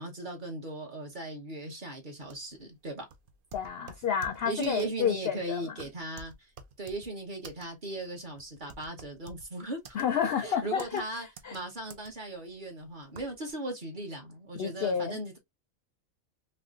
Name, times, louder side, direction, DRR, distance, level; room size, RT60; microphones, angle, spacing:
voice 1, 0.0-3.0 4.4-6.5 6.8-10.0 10.4-11.3 11.5-15.4, right 2 dB, 40° right, 1.0 m, -38 dB
sound 1, 2.2-13.5, right 4 dB, 55° right, 0.6 m, -51 dB
voice 2, 3.5-5.7 9.9-11.6 14.6-15.2, left 8 dB, 65° left, 0.6 m, -30 dB
3.3 x 3.0 x 2.4 m
omnidirectional pair, 1.4 m